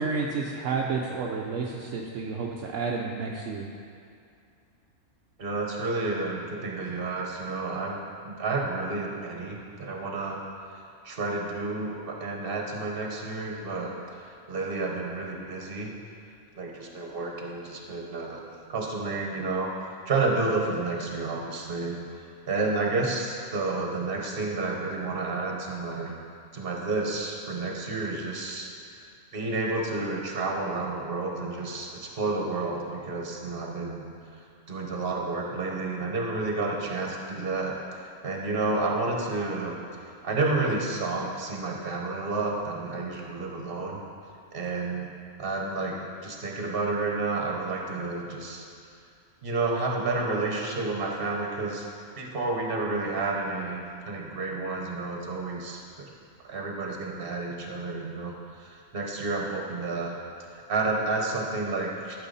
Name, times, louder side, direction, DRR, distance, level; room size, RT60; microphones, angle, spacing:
voice 1, 0.0-3.7, right 4 dB, 70° right, -1 dB, 1.0 m, -30 dB
voice 2, 5.4-10.4 11.0-15.9 16.5-19.7 20.0-22.0 22.5-26.1 26.5-28.7 29.3-34.0 34.7-39.8 40.2-44.0 44.5-45.1 45.4-46.0 46.2-48.6 49.4-51.8 52.2-56.1 56.4-60.1 60.5-62.3, right 3 dB, 45° right, 0 dB, 1.4 m, -30 dB
12.5 x 6.8 x 4.1 m, 2.4 s
omnidirectional pair, 1.4 m